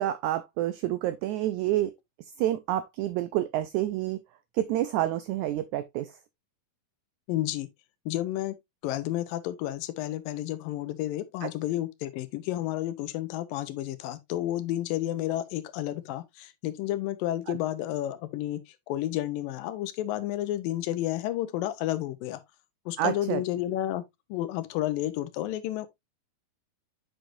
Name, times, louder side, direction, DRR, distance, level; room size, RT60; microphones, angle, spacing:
voice 1, 0.0-1.9 2.4-4.2 4.5-6.1 11.4-11.5 17.5-17.6 23.0-23.4, right 13 dB, 90° right, 1.6 m, -28 dB
voice 2, 7.3-7.7 8.1-8.6 8.8-22.4 22.9-24.0 24.3-25.9, left 14 dB, 80° left, 2.5 m, -31 dB
7.9 x 6.4 x 2.6 m
omnidirectional pair, 4.0 m